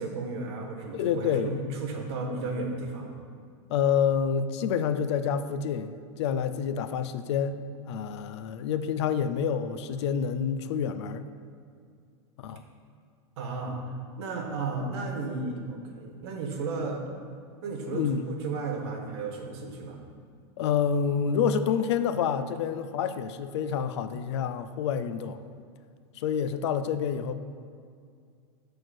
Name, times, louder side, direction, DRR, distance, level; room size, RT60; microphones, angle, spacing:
voice 1, 0.0-3.1 13.4-13.8 14.2-17.0 17.6-20.0, right 3 dB, 65° right, 3 dB, 1.3 m, -34 dB
voice 2, 0.9-1.5 3.7-7.6 7.9-11.3 12.4-12.6 17.9-18.2 20.6-25.4 26.2-27.3, left 7 dB, 70° left, 11 dB, 0.5 m, -28 dB
6.3 x 4.4 x 6.5 m, 2.2 s
supercardioid pair, 145°, 15 cm